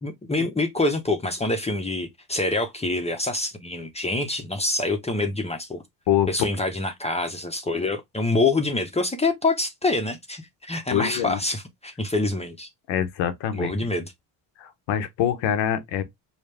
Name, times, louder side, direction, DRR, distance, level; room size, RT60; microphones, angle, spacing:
voice 1, 0.0-5.8 6.3-12.7 13.5-14.1, left 2 dB, 15° left, 0.9 m, -26 dB
voice 2, 10.9-11.4 12.9-13.7 14.6-16.0, left 10 dB, 85° left, 1.0 m, -25 dB
5.1 x 2.3 x 3.3 m
cardioid pair, 90°, 42 cm